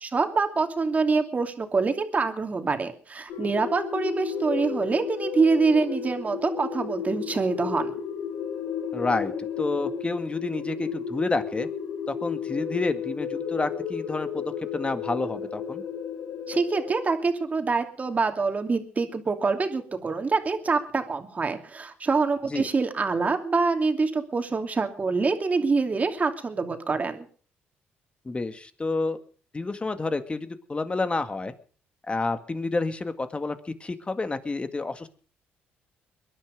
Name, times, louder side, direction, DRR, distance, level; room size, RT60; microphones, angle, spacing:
voice 1, 0.0-7.9 16.5-27.3, right 4 dB, 35° right, 6 dB, 2.7 m, -25 dB
sound 1, 3.3-16.9, left 6 dB, 75° left, 2.7 m, -33 dB
voice 2, 8.9-9.3 9.6-11.7 12.1-15.8 22.5-22.7 28.3-29.2 29.5-31.5 32.1-35.1, left 3 dB, 25° left, 9 dB, 1.9 m, -29 dB
22.0 x 11.0 x 5.2 m, 0.43 s
supercardioid pair, 65°, 4 cm